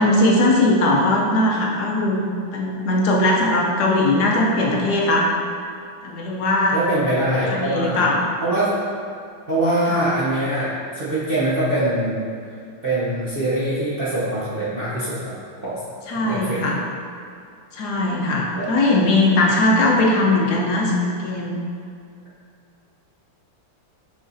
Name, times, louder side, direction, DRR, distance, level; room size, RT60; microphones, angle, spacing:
voice 1, 0.0-2.2 2.5-5.3 6.0-6.8 7.5-8.2 9.9-10.0 16.1-16.8 17.7-21.6, left 2 dB, 65° left, -2 dB, 1.1 m, -19 dB
voice 2, 6.7-8.0 8.4-8.7 9.5-10.7 10.9-12.2 12.8-15.3 15.6-15.8 16.2-16.6 18.5-18.6, right 1 dB, 55° right, -10 dB, 0.6 m, -23 dB
6.1 x 5.8 x 2.7 m, 2.4 s
omnidirectional pair, 2.4 m